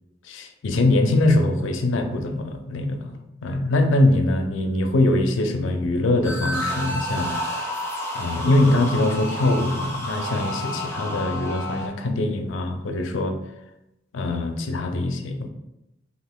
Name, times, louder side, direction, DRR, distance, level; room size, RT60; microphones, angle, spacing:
voice 1, 0.3-7.3 8.1-13.4 14.1-15.5, left 2 dB, 80° left, 6 dB, 0.4 m, -22 dB
sound 1, 6.2-11.9, equal, 15° left, 0.5 m, -30 dB
2.9 x 2.4 x 3.5 m, 0.92 s
head